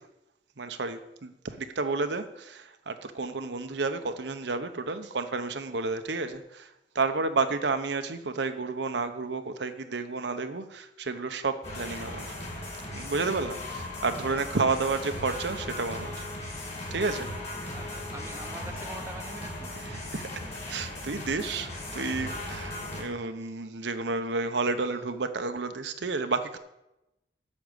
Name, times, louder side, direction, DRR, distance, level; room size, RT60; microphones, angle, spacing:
voice 1, 0.6-12.3 12.9-16.2 16.6-17.3 19.8-20.2 20.7-26.6, right 3 dB, 75° right, 8 dB, 0.9 m, -31 dB
sound 1, 11.6-23.0, left 1 dB, 40° left, 3.0 m, -37 dB
voice 2, 17.7-19.7, right 2 dB, 15° right, 5 dB, 0.8 m, -44 dB
8.6 x 6.4 x 8.0 m, 0.90 s
head